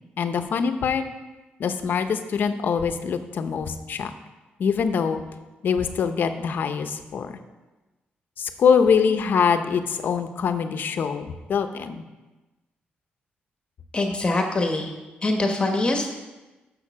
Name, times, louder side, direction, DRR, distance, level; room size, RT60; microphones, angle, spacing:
voice 1, 0.2-1.1 1.6-4.1 4.6-5.2 5.6-7.3 8.4-12.0, left 6 dB, 65° left, 8 dB, 0.7 m, -23 dB
voice 2, 13.9-14.9 15.2-16.1, left 2 dB, 30° left, 3 dB, 1.1 m, -23 dB
6.5 x 6.5 x 6.1 m, 1.1 s
cardioid pair, 100°, 4 cm